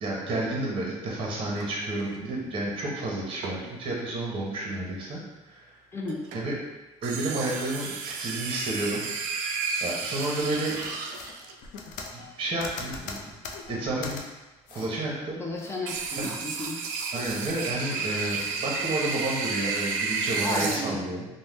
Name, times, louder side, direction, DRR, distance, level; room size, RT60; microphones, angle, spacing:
voice 1, 0.0-5.7 6.3-6.5 7.0-9.0 9.8-10.8 12.1-13.3 13.7-14.2 14.7-15.4 16.2-16.3 17.1-21.3, right 2 dB, 40° right, -3 dB, 0.8 m, -31 dB
sound 1, 1.6-2.2 3.4-4.0 6.1-6.6 7.0-11.5 15.9-20.8, right 4 dB, 80° right, 0.4 m, -32 dB
voice 2, 5.9-6.3 15.4-16.9 20.4-21.0, left 2 dB, 20° left, -1 dB, 0.5 m, -33 dB
sound 2, 10.3-14.2 14.7-14.9 15.3-16.6 16.9-17.8 18.3-18.5, left 4 dB, 75° left, 0.4 m, -42 dB
2.6 x 2.1 x 3.3 m, 1.1 s
supercardioid pair, 95°, 14 cm